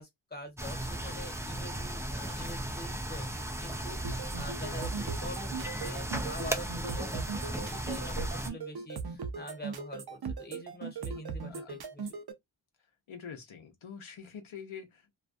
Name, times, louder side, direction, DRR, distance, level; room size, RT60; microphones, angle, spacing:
voice 1, 0.0-12.2, left 1 dB, 20° left, 1.0 m, -46 dB
sound 1, 0.6-8.5, right 1 dB, 5° right, 0.3 m, -36 dB
sound 2, 4.0-12.3, right 5 dB, 55° right, 0.6 m, -38 dB
voice 2, 13.1-15.1, left 7 dB, 85° left, 0.7 m, -45 dB
2.4 x 2.2 x 2.4 m
wide cardioid pair, 75°, 47 cm